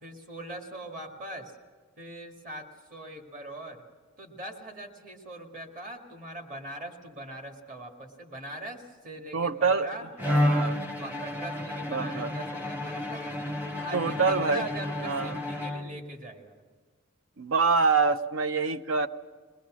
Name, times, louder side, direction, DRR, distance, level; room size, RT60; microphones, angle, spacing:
voice 1, 0.0-1.5 2.0-3.8 4.2-10.1 10.5-13.2 13.8-16.6, right 1 dB, 40° right, 2 dB, 2.0 m, -41 dB
voice 2, 9.3-9.9 10.3-10.8 11.9-12.3 13.9-14.7 15.0-15.4 17.4-19.1, right 4 dB, 80° right, 11 dB, 0.7 m, -26 dB
Bowed string instrument, 10.2-16.2, left 1 dB, 10° right, 0.9 m, -31 dB
22.0 x 20.0 x 6.3 m, 1.5 s
head